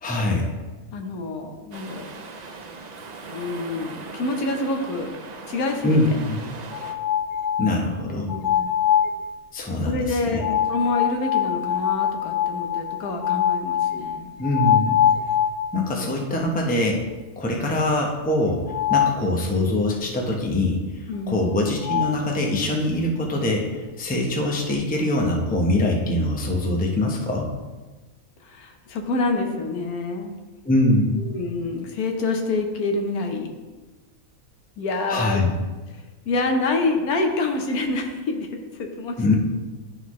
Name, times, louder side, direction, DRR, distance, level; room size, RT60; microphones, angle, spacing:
voice 1, 0.0-0.5 5.8-6.4 7.6-8.3 9.5-10.4 14.4-15.0 15.7-17.0 17.4-18.6 18.9-27.5 30.6-31.3 35.1-35.6 39.2-39.3, left 1 dB, 10° left, 0 dB, 0.6 m, -23 dB
voice 2, 0.9-2.1 3.3-5.1 5.5-6.0 8.1-8.9 9.8-14.3 21.1-21.5 28.4-30.3 31.2-33.5 34.8-35.4 35.9-38.5 38.8-39.4, left 3 dB, 85° left, 3 dB, 1.4 m, -27 dB
sound 1, 1.7-6.9, right 4 dB, 85° right, 0.3 m, -39 dB
sound 2, 6.7-7.8 8.3-9.2 10.4-16.0 16.4-16.5 17.0-17.1 18.7-19.2 21.5-21.6 21.8-22.2, left 10 dB, 65° left, 0.7 m, -23 dB
11.0 x 3.9 x 3.1 m, 1.2 s
omnidirectional pair, 1.5 m